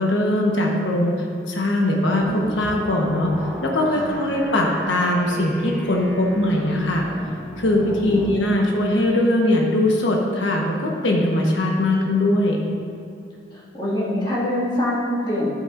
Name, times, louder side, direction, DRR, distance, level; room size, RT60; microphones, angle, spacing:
voice 1, 0.0-3.3 3.6-7.1 7.6-12.6, left 1 dB, 80° left, -1 dB, 1.2 m, -21 dB
sound 1, 2.1-8.4, equal, ahead, 1.1 m, -36 dB
voice 2, 7.8-8.4 13.5-15.5, left 1 dB, 25° left, -8 dB, 2.1 m, -25 dB
11.0 x 8.6 x 2.6 m, 2.5 s
head